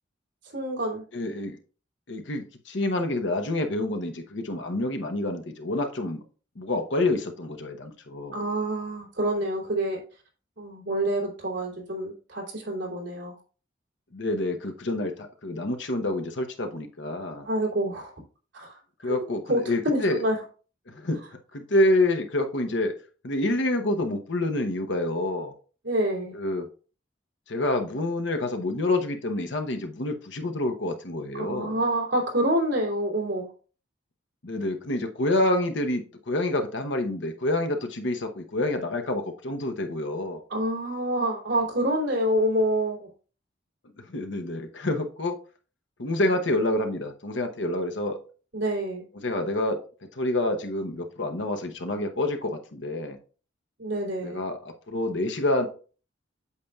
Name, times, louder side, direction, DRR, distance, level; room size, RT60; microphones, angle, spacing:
voice 1, 0.5-1.0 8.3-10.0 10.6-13.3 17.4-18.1 18.5-20.4 25.8-26.3 31.3-33.5 40.5-43.1 48.5-49.1 53.8-54.4, right 1 dB, 75° right, -1 dB, 2.9 m, -27 dB
voice 2, 1.1-1.6 2.1-6.2 6.6-8.4 14.1-17.5 19.0-20.2 20.9-21.2 21.5-22.9 23.2-25.5 26.3-26.7 27.5-31.8 34.4-40.4 44.1-45.4 46.0-48.2 49.1-49.8 50.1-53.2 54.2-55.6, left 1 dB, 70° left, 5 dB, 1.0 m, -27 dB
8.4 x 6.7 x 2.4 m, 0.38 s
head